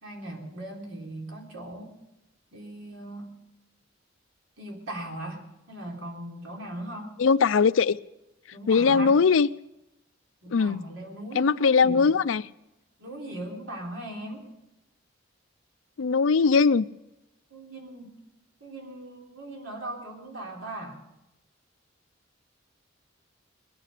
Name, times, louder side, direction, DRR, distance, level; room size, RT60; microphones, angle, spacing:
voice 1, 0.0-1.9 2.5-3.3 4.6-7.1 8.5-9.2 10.4-12.1 13.0-14.5 17.5-18.1 18.6-21.0, right 1 dB, 90° right, 3.6 m, -39 dB
voice 2, 7.2-8.0 8.7-9.5 10.5-10.8 11.3-12.4 16.0-16.9, left 5 dB, 70° left, 0.5 m, -20 dB
21.0 x 9.2 x 6.6 m
head